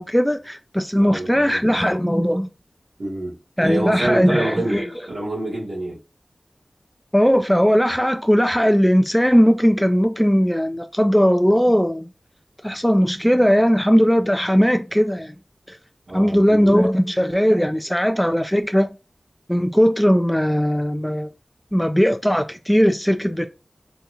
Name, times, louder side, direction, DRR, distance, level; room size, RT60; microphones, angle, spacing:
voice 1, 0.0-2.5 3.6-4.9 7.1-12.1 12.6-15.3 15.7-15.8 16.1-18.9 19.5-21.3 21.7-23.5, equal, 5° left, 0.4 m, -18 dB
voice 2, 1.0-1.8 3.0-4.8 5.1-6.0 16.1-16.9, right 1 dB, 85° right, 1.5 m, -27 dB
3.9 x 2.4 x 2.9 m
wide cardioid pair, 50°, 0 cm